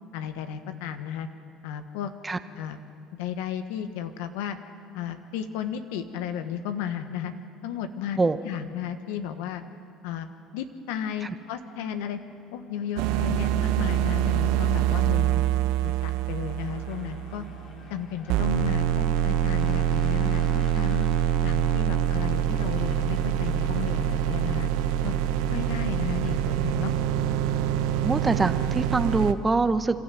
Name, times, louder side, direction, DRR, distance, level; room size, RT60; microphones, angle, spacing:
voice 1, 0.1-1.3 1.6-2.1 2.6-2.8 3.1-4.6 4.9-7.3 7.6-8.2 8.4-9.6 10.0-10.3 10.5-12.2 12.5-15.4 15.8-17.4 17.9-20.4 20.7-21.1 21.4-24.7 25.0-25.1 25.5-26.9, left 9 dB, 80° left, 9 dB, 1.4 m, -33 dB
sound 1, 12.2-29.1, left 2 dB, 50° left, 3.1 m, -48 dB
sound 2, 13.0-17.9 18.3-29.3, right 10 dB, 75° right, 0.9 m, -25 dB
voice 2, 28.0-30.0, right 3 dB, 20° right, 11 dB, 1.2 m, -24 dB
27.0 x 12.5 x 9.2 m, 2.6 s
hypercardioid pair, 75°, 0 cm